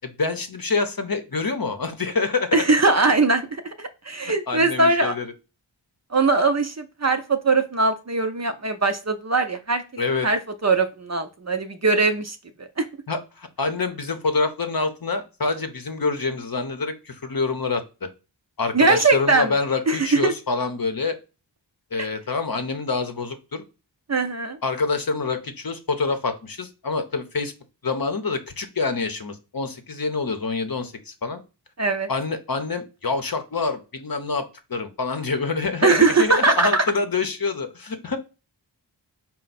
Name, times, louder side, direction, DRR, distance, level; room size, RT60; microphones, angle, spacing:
voice 1, 0.0-2.6 4.5-5.3 10.0-10.3 13.1-18.1 18.6-21.2 21.9-23.6 24.6-27.5 27.8-31.4 32.1-34.4 34.7-38.2, left 4 dB, 50° left, 8 dB, 0.7 m, -26 dB
voice 2, 2.5-5.1 6.1-9.8 10.2-12.9 18.7-19.5 19.9-20.3 24.1-24.6 31.8-32.1 35.8-36.8, right 3 dB, 35° right, 8 dB, 0.5 m, -21 dB
4.4 x 2.1 x 4.0 m, 0.30 s
wide cardioid pair, 45°, 45 cm